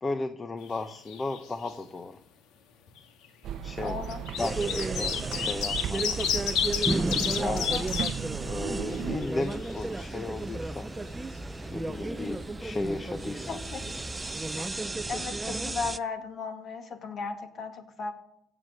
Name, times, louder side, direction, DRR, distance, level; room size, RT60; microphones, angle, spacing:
voice 1, 0.0-2.2 3.6-4.0 4.4-6.2 7.3-7.8 8.4-10.9 11.7-13.5, left 2 dB, 25° left, 8 dB, 0.8 m, -35 dB
sound 1, 0.6-1.4 1.6-1.7 2.9-3.0 3.9-8.1 8.6-8.7 8.9-10.0 13.9-14.0 14.2-14.3, left 8 dB, 70° left, 1.9 m, -30 dB
sound 2, 3.4-9.2, right 9 dB, 55° right, 0.8 m, -36 dB
voice 2, 3.8-4.2 7.4-7.9 13.5-14.0 14.6-14.8 15.1-18.1, left 4 dB, 45° left, 6 dB, 2.1 m, -36 dB
sound 3, 4.4-16.0, right 2 dB, 15° right, 0.5 m, -33 dB
16.0 x 7.9 x 6.6 m, 0.75 s
cardioid pair, 110°, 0 cm